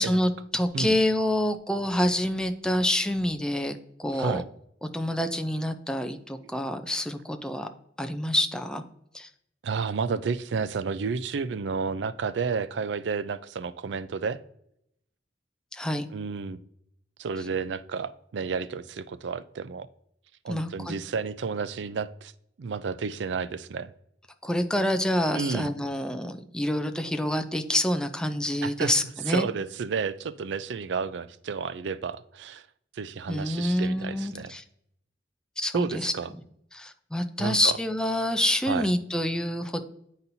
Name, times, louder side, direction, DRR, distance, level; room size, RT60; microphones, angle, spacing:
voice 1, 0.0-4.4 4.9-7.7 8.0-8.8 9.1-9.3 15.7-16.1 20.5-21.0 24.4-29.5 33.3-34.6 35.6-36.1 36.7-39.8, left 1 dB, 5° left, 7 dB, 0.5 m, -27 dB
voice 2, 4.1-4.5 9.6-14.4 16.1-16.6 17.2-19.9 20.4-22.3 22.6-23.9 25.3-25.7 28.6-28.9 29.3-32.7 32.9-34.5 35.7-36.3 37.4-37.8 38.7-38.9, right 5 dB, 80° right, 14 dB, 0.4 m, -31 dB
10.5 x 4.1 x 2.7 m, 0.73 s
head